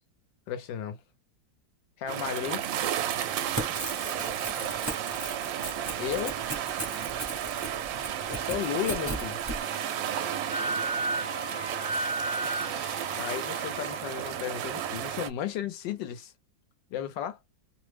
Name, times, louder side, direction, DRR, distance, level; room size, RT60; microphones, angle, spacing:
voice 1, 0.5-1.0 2.0-2.6 6.0-6.4 8.3-9.4 12.4-16.3 16.9-17.4, left 10 dB, 80° left, 1.4 m, -34 dB
sound 1, 2.1-15.3, right 10 dB, 85° right, 1.3 m, -33 dB
voice 2, 2.2-2.5 4.2-5.3 6.8-7.2 9.6-11.9, right 5 dB, 60° right, 1.0 m, -49 dB
Crackle / Tearing, 3.2-9.6, right 2 dB, 20° right, 0.4 m, -37 dB
Wind instrument woodwind instrument, 8.2-14.0, right 1 dB, 60° left, 0.5 m, -35 dB
3.3 x 2.0 x 3.2 m
omnidirectional pair, 2.0 m